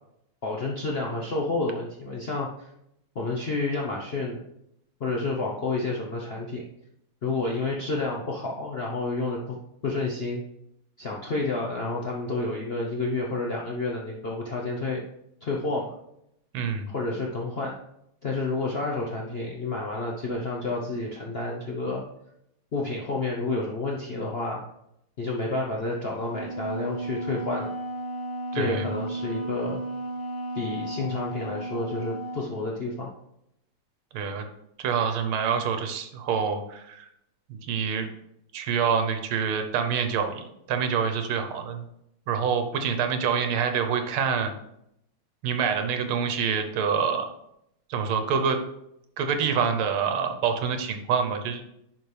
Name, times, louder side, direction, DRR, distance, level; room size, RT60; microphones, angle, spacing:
voice 1, 0.4-2.7 3.1-4.4 5.0-6.6 7.2-9.6 9.8-10.4 11.0-15.0 15.4-15.9 16.9-17.8 18.2-22.0 22.7-24.6 25.2-27.7 28.5-29.8 30.5-33.1, left 3 dB, 90° left, -2 dB, 0.5 m, -30 dB
voice 2, 16.5-16.9 28.5-28.9 34.1-34.4 34.8-37.1 37.6-38.1 38.5-41.8 42.3-44.5 45.4-47.3 47.9-48.6 49.2-51.6, right 6 dB, 85° right, 6 dB, 1.7 m, -26 dB
Wind instrument woodwind instrument, 26.3-32.6, right 2 dB, 70° left, 1.7 m, -34 dB
10.5 x 4.2 x 3.3 m, 0.78 s
omnidirectional pair, 2.3 m